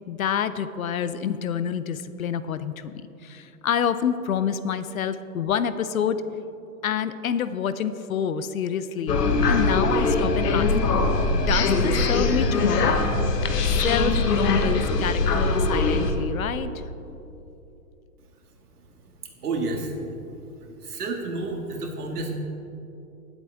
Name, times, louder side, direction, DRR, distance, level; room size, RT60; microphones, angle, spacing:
voice 1, 0.1-6.2 6.8-9.2 9.5-10.7 11.3-13.0 13.6-16.7, left 8 dB, 60° left, 13 dB, 0.6 m, -27 dB
sound 1, 9.1-16.1, left 3 dB, 80° left, 1.4 m, -22 dB
voice 2, 19.2-20.0 20.6-22.3, right 3 dB, 70° right, 2 dB, 2.0 m, -31 dB
18.5 x 8.2 x 3.5 m, 2.9 s
hypercardioid pair, 180°, 47 cm